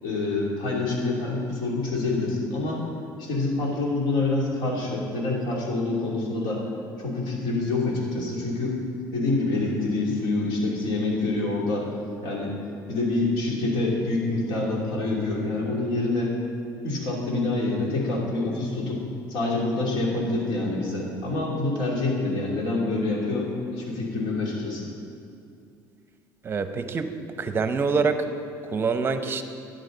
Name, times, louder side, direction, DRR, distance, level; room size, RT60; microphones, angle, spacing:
voice 1, 0.0-2.9 3.2-6.6 7.0-8.8 9.1-11.9 12.2-12.5 12.9-16.3 16.8-19.0 19.3-24.9, left 2 dB, 70° left, -3 dB, 2.9 m, -26 dB
voice 2, 26.4-27.1 27.4-28.3 28.7-29.4, right 4 dB, 30° right, 9 dB, 0.7 m, -25 dB
12.5 x 10.0 x 3.9 m, 2.4 s
cardioid pair, 120°, 8 cm